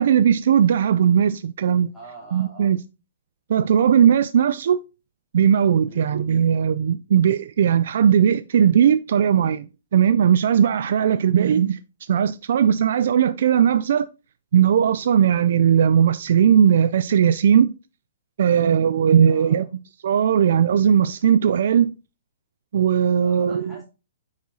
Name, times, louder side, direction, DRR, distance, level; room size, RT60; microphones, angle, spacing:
voice 1, 0.0-1.9 2.3-2.8 3.5-4.8 5.3-11.8 12.1-14.1 14.5-17.7 18.4-19.6 20.0-21.9 22.7-23.7, right 8 dB, 45° right, 0.4 m, -18 dB
voice 2, 1.9-2.7 4.3-4.4 5.9-6.1 11.1-11.3 19.2-19.7 23.2-23.9, right 2 dB, 5° left, 2.8 m, -45 dB
9.3 x 4.8 x 3.9 m
hypercardioid pair, 180°, 0 cm